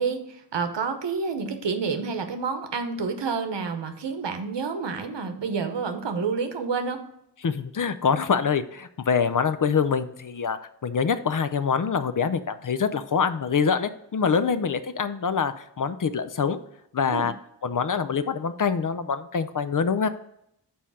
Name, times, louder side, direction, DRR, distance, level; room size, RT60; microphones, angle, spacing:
voice 1, 0.0-7.0 17.1-17.3, right 5 dB, 80° right, 7 dB, 0.9 m, -29 dB
voice 2, 7.4-16.6 16.9-17.3 17.6-20.1, left 6 dB, 50° left, 12 dB, 0.6 m, -25 dB
5.4 x 4.3 x 6.2 m, 0.76 s
cardioid pair, 50°, 42 cm